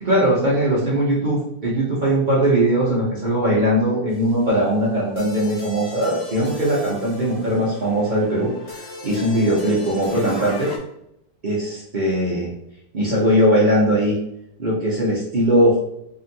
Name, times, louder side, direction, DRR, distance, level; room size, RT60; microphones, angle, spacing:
voice 1, 0.0-10.7 11.4-12.5 12.9-14.2 14.6-15.8, right 1 dB, 90° right, -6 dB, 0.4 m, -20 dB
sound 1, 4.1-10.8, left 3 dB, 50° left, 0.6 m, -38 dB
2.9 x 2.7 x 2.6 m, 0.76 s
omnidirectional pair, 1.8 m